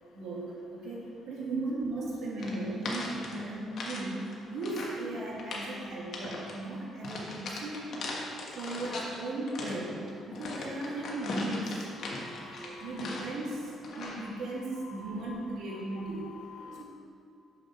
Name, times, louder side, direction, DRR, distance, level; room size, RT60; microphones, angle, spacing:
voice 1, 0.0-8.2 8.6-11.9 12.6-16.4, right 2 dB, 75° right, -4 dB, 2.2 m, -37 dB
sound 1, 2.4-4.0 4.3-5.0 5.3-5.7 6.1-6.6 7.0-9.2 9.5-13.5 13.8-14.3, left 2 dB, 60° left, 1.5 m, -39 dB
voice 2, 12.0-13.3 14.0-14.4 14.8-15.4 15.7-16.8, left 2 dB, 80° left, 2 dB, 1.1 m, -48 dB
6.6 x 6.6 x 5.9 m, 2.4 s
cardioid pair, 120°, 0 cm